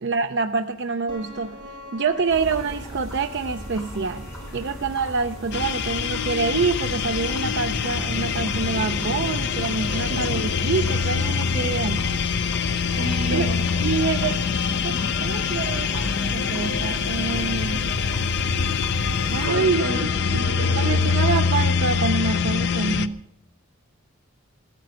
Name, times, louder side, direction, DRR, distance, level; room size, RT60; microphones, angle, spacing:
voice 1, 0.0-1.6 1.9-4.3 4.5-12.0 13.3-13.5 13.8-14.4 14.7-17.9 19.3-20.4 20.8-23.2, right 4 dB, 55° right, 7 dB, 0.5 m, -26 dB
sound 1, 1.1-19.4, left 1 dB, 20° right, 6.6 m, -48 dB
sound 2, 2.3-19.5, equal, 10° left, 6.5 m, -37 dB
sound 3, 5.5-23.1, left 5 dB, 55° left, 0.6 m, -24 dB
voice 2, 9.9-10.3 12.9-13.6 19.5-21.1, right 2 dB, 85° right, 5 dB, 2.3 m, -31 dB
16.0 x 9.1 x 7.7 m, 0.77 s
head